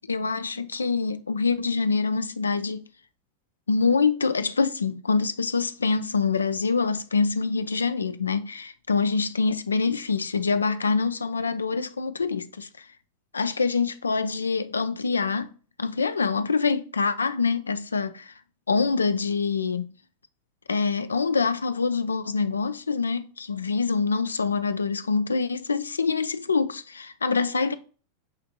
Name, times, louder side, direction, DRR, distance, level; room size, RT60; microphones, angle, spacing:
voice 1, 0.1-2.8 3.7-12.9 13.3-15.5 15.8-18.4 18.7-19.9 20.7-27.7, left 4 dB, 75° left, 0.3 m, -25 dB
5.6 x 3.3 x 2.6 m
figure-of-eight pair, 90°, 0 cm